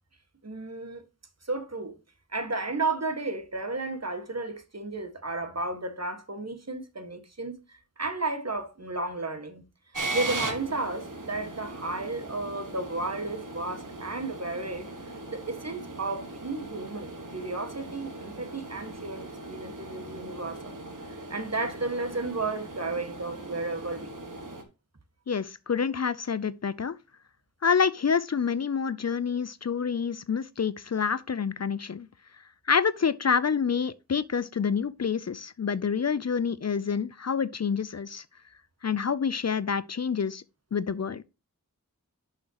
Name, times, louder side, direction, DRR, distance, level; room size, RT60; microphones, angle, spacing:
voice 1, 0.4-1.0 1.5-2.0 2.3-9.6 10.1-14.9 15.3-20.7 21.0-24.3, right 3 dB, 50° right, 1.7 m, -33 dB
sound 1, 9.9-24.6, right 2 dB, 70° right, 1.6 m, -39 dB
voice 2, 25.3-27.0 27.6-32.1 32.7-38.2 38.8-40.4 40.7-41.2, left 6 dB, 50° left, 0.5 m, -27 dB
11.0 x 5.6 x 2.9 m
wide cardioid pair, 60°, 33 cm